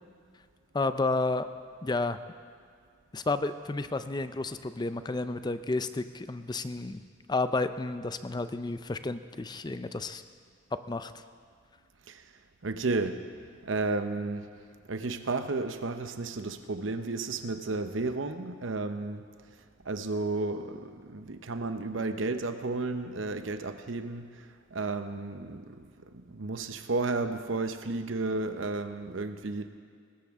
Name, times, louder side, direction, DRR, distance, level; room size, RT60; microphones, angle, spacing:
voice 1, 0.7-1.5 1.8-2.2 3.1-7.0 7.3-10.2 10.9-11.1, left 3 dB, 20° left, 11 dB, 0.5 m, -31 dB
voice 2, 12.6-13.2 13.6-14.4 14.9-19.3 19.9-24.3 24.7-25.8 26.1-29.7, right 3 dB, 90° right, 9 dB, 0.8 m, -32 dB
20.5 x 13.0 x 3.6 m, 2.2 s
head